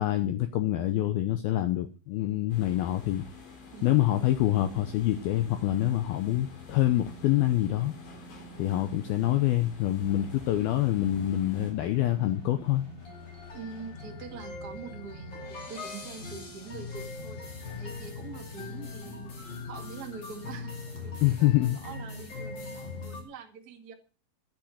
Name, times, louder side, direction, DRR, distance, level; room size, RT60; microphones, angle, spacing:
voice 1, 0.0-3.2 3.8-7.9 8.6-12.8 21.2-21.8, left 14 dB, 90° left, 9 dB, 2.1 m, -26 dB
sound 1, 2.5-11.7, left 4 dB, 60° left, 5.3 m, -49 dB
sound 2, 4.1-15.7 16.1-16.2, left 1 dB, 55° right, 2.9 m, -49 dB
sound 3, 10.0-23.2, left 3 dB, 35° left, 2.2 m, -41 dB
voice 2, 13.5-23.9, right 5 dB, 75° right, 2 dB, 0.8 m, -44 dB
11.0 x 8.9 x 6.4 m, 0.34 s
omnidirectional pair, 5.4 m